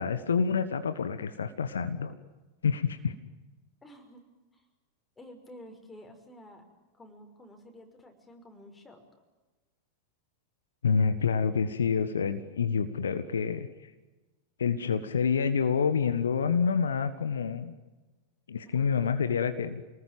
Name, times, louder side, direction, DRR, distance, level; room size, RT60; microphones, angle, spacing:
voice 1, 0.0-2.2 2.6-3.1 10.8-13.9 14.6-17.7 18.5-19.8, left 6 dB, 70° left, 11 dB, 1.4 m, -28 dB
voice 2, 3.8-4.2 4.5-4.7 5.2-6.6 6.9-9.0 18.6-19.2, left 1 dB, 10° left, 5 dB, 5.8 m, -51 dB
28.0 x 20.0 x 9.0 m, 1.2 s
figure-of-eight pair, 90°, 0 cm